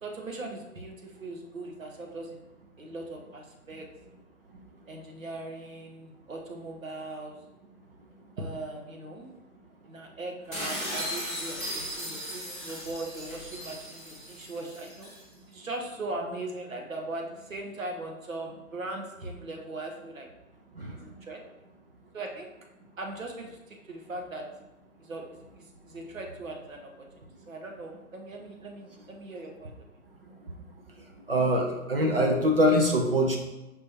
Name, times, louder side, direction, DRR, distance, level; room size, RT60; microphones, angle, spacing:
voice 1, 0.0-2.4 2.8-3.9 4.9-7.3 8.4-9.5 9.9-15.1 15.5-20.3 20.9-21.4 22.1-22.5 23.0-24.4 25.0-25.2 25.5-26.9 27.2-29.7 32.3-32.5, right 2 dB, 65° right, 1 dB, 1.1 m, -39 dB
sound 1, 10.5-15.2, equal, ahead, 0.6 m, -37 dB
voice 2, 31.3-33.4, equal, 40° right, 1 dB, 0.5 m, -23 dB
5.4 x 2.9 x 2.8 m, 1.0 s
figure-of-eight pair, 135°, 44 cm